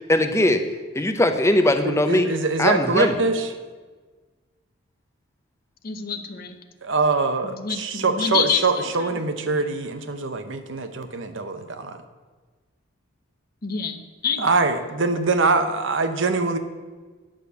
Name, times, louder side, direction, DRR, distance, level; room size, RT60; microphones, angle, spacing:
voice 1, 0.1-0.6 0.9-2.3 2.6-3.2, left 1 dB, 15° left, 7 dB, 0.6 m, -20 dB
voice 2, 1.8-3.5 6.8-12.0 14.4-16.6, right 3 dB, 60° right, 8 dB, 0.9 m, -23 dB
voice 3, 5.8-6.6 7.4-9.7 13.6-14.6, left 7 dB, 45° left, 7 dB, 0.8 m, -28 dB
10.0 x 6.6 x 6.9 m, 1.4 s
head